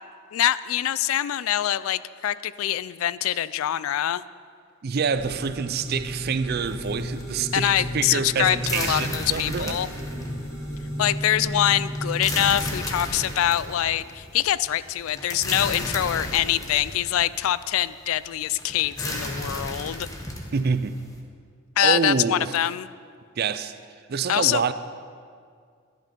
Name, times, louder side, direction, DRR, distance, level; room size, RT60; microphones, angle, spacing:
voice 1, 0.3-4.2 7.5-9.9 11.0-20.1 21.8-22.9 24.3-24.6, left 11 dB, 80° left, 17 dB, 0.3 m, -24 dB
voice 2, 4.8-9.8 20.5-21.0 21.8-22.6 23.4-23.7 24.1-24.7, right 5 dB, 45° right, 11 dB, 0.4 m, -26 dB
sound 1, 5.1-12.7, equal, 5° right, 2.2 m, -33 dB
sound 2, 6.6-21.2, left 1 dB, 15° left, 1.1 m, -34 dB
11.5 x 10.5 x 5.3 m, 2.1 s
head